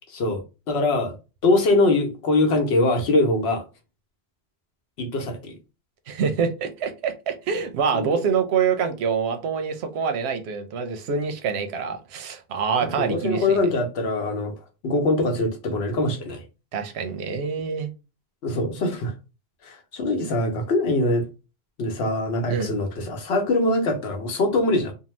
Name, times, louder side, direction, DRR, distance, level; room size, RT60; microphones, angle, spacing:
voice 1, 0.7-1.1 1.4-3.6 5.0-5.6 7.9-8.1 12.8-14.5 14.8-16.4 18.4-19.1 19.6-21.3 21.8-24.9, left 2 dB, 80° left, 1.0 m, -23 dB
voice 2, 6.1-13.6 16.7-17.9 22.5-22.7, right 6 dB, 85° right, 0.9 m, -26 dB
2.7 x 2.2 x 3.1 m
omnidirectional pair, 1.1 m